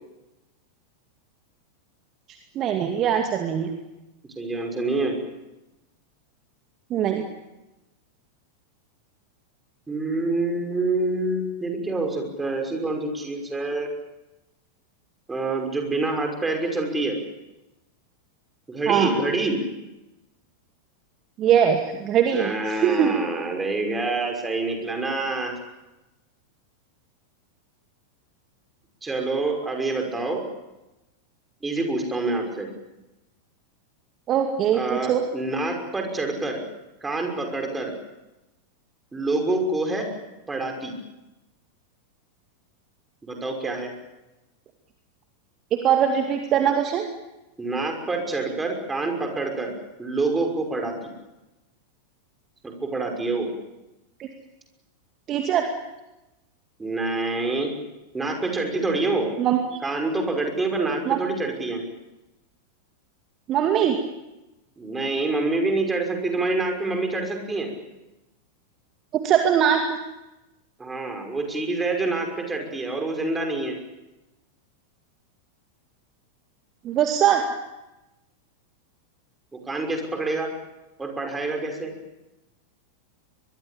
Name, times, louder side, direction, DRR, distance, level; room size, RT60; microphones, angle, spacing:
voice 1, 2.6-3.7 6.9-7.2 18.9-19.1 21.4-23.2 34.3-35.2 45.7-47.1 54.2-54.3 55.3-55.7 59.4-59.8 61.1-61.2 63.5-64.0 69.1-70.0 76.8-77.6, right 9 dB, 30° right, 4 dB, 2.3 m, -21 dB
voice 2, 4.4-5.2 9.9-13.9 15.3-17.2 18.7-19.6 22.3-25.5 29.0-30.4 31.6-32.7 34.7-36.6 37.0-37.9 39.1-40.1 40.5-40.9 43.2-43.9 47.6-51.0 52.6-53.5 56.8-57.7 58.1-59.3 59.8-61.8 64.8-67.7 70.8-73.8 79.5-80.5 81.0-81.9, right 2 dB, 10° right, 3 dB, 5.8 m, -26 dB
23.5 x 22.0 x 8.6 m, 1.0 s
figure-of-eight pair, 90°, 0 cm